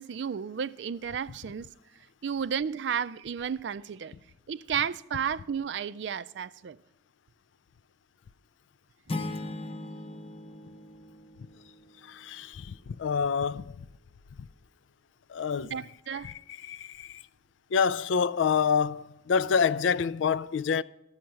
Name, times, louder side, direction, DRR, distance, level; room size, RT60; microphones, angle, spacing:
voice 1, 0.0-1.7 2.2-4.1 4.5-6.8 15.6-16.3, right 7 dB, 70° right, 0.4 m, -32 dB
sound 1, 9.1-11.9, left 2 dB, 30° left, 0.7 m, -38 dB
voice 2, 12.1-13.7 15.3-15.7 16.2-16.3 16.6-17.2 17.7-20.8, left 6 dB, 85° left, 0.4 m, -27 dB
13.5 x 6.4 x 5.7 m
head